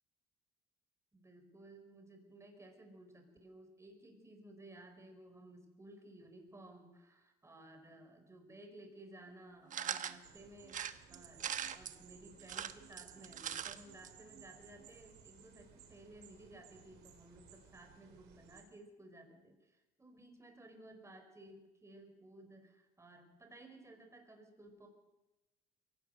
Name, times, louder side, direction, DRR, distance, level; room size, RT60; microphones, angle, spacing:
voice 1, 1.1-24.9, right 1 dB, 15° right, 4 dB, 4.8 m, -57 dB
sound 1, 9.7-10.2 10.7-12.0 12.4-13.8 14.0-14.1 14.4-14.5, right 9 dB, 50° right, 1.1 m, -41 dB
sound 2, 10.2-18.6, right 8 dB, 80° right, 4.3 m, -60 dB
23.0 x 17.0 x 6.5 m, 1.1 s
cardioid pair, 110°, 17 cm